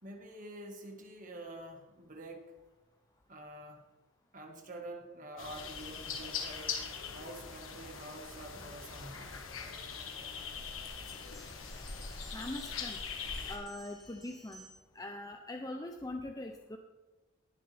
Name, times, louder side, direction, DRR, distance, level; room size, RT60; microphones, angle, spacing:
voice 1, 0.0-2.5 3.3-3.8 4.3-6.8 7.1-9.3, right 1 dB, 40° right, 3 dB, 1.8 m, -47 dB
sound 1, 5.4-13.6, left 5 dB, 85° left, 1.6 m, -41 dB
sound 2, 11.1-15.0, equal, ahead, 3.0 m, -57 dB
voice 2, 12.3-13.0 13.5-14.7 14.9-16.8, left 1 dB, 20° left, 4 dB, 0.6 m, -42 dB
19.0 x 7.1 x 3.5 m, 1.1 s
head